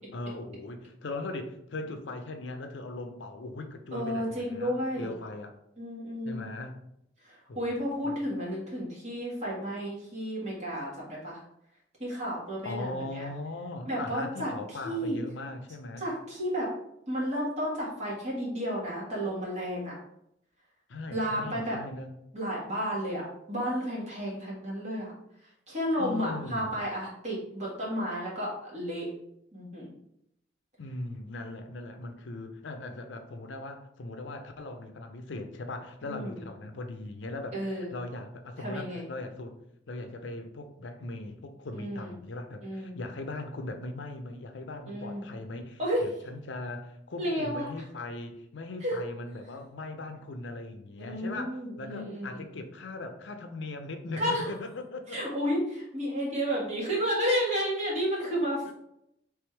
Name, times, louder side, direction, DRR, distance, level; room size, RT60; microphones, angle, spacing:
voice 1, 0.1-5.5 6.2-6.8 7.5-7.8 8.0-8.2 12.6-16.0 20.9-22.1 26.0-26.7 30.8-39.6 39.9-55.2 58.7-58.8, left 2 dB, 70° left, 7 dB, 0.6 m, -39 dB
voice 2, 3.9-5.1 5.8-6.5 7.2-11.4 12.0-13.3 13.9-14.5 14.8-15.2 16.0-16.7 17.1-19.9 21.1-21.8 22.3-25.1 25.7-29.1 29.5-29.9 36.0-36.4 37.5-37.9 38.6-39.0 41.7-42.1 42.6-42.9 44.9-45.3 45.8-46.1 47.2-47.7 48.8-49.0 51.0-52.6 54.2-54.5 55.1-58.7, equal, 35° right, -5 dB, 1.7 m, -32 dB
3.5 x 3.4 x 4.5 m, 0.78 s
head